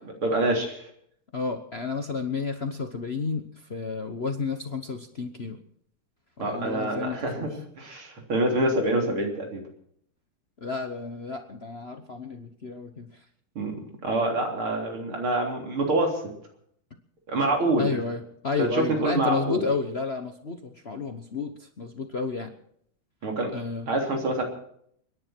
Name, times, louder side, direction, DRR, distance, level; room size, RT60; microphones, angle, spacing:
voice 1, 0.0-0.9 6.4-9.6 13.6-16.2 17.3-18.0 18.6-19.7 23.2-23.5 23.9-24.4, right 1 dB, 80° right, 1 dB, 4.3 m, -26 dB
voice 2, 1.3-3.4 3.7-5.6 6.4-7.5 10.6-13.2 17.8-22.5 23.5-23.9, left 4 dB, 40° left, 6 dB, 1.0 m, -31 dB
29.5 x 10.5 x 4.5 m, 0.67 s
omnidirectional pair, 2.3 m